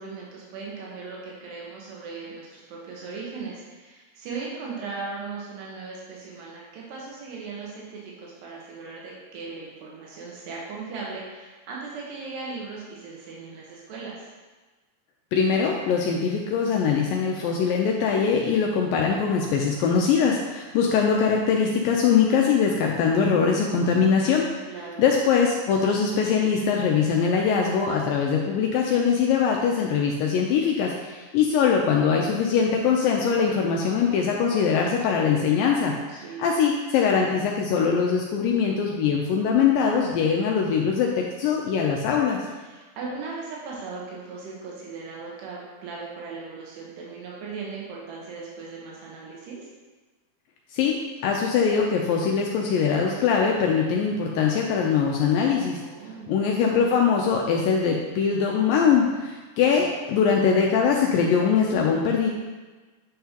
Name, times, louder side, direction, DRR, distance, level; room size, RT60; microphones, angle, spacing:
voice 1, 0.0-14.2 24.7-25.0 36.1-36.5 42.6-49.7 55.7-56.3, right 4 dB, 85° right, -4 dB, 3.3 m, -38 dB
voice 2, 15.3-24.5 24.8-42.4 50.7-51.0 51.2-55.8 56.3-62.3, left 6 dB, 85° left, 0 dB, 2.0 m, -22 dB
9.3 x 5.8 x 2.9 m, 1.3 s
omnidirectional pair, 4.7 m